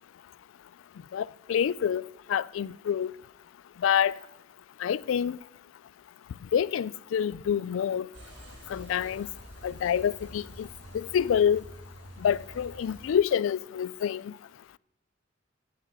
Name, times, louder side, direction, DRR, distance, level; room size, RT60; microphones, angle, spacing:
voice 1, 1.1-2.0 2.3-3.1 3.8-4.1 4.8-5.4 6.5-8.1 8.7-9.3 9.6-10.7 10.9-11.6 12.2-14.3, left 8 dB, 85° left, 0.3 m, -27 dB
sound 1, 8.1-13.1, equal, 65° right, 2.0 m, -47 dB
11.0 x 7.5 x 5.9 m
head